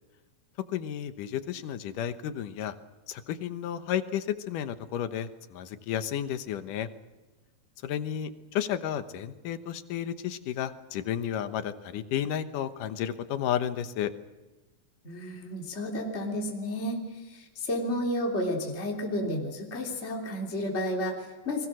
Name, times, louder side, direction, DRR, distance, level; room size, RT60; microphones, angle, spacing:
voice 1, 0.7-2.7 3.1-6.9 7.8-14.1, left 10 dB, 90° left, 10 dB, 2.8 m, -32 dB
voice 2, 15.0-17.0 17.3-21.7, left 1 dB, 20° left, 0 dB, 3.3 m, -31 dB
30.0 x 22.5 x 6.3 m, 1.2 s
omnidirectional pair, 3.6 m